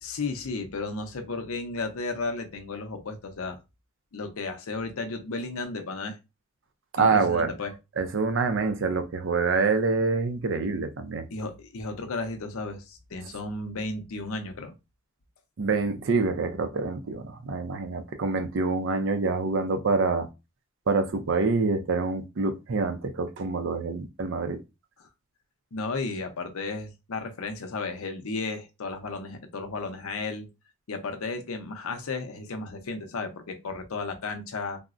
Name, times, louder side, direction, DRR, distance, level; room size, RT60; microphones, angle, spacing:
voice 1, 0.0-3.6 4.1-6.2 7.0-7.7 11.3-14.7 25.0-25.1 25.7-30.5 30.9-34.8, left 3 dB, 75° left, 0.6 m, -34 dB
voice 2, 6.9-7.5 8.0-11.3 15.6-20.3 20.9-24.6, right 4 dB, 55° right, 0.4 m, -26 dB
3.6 x 2.0 x 2.4 m
head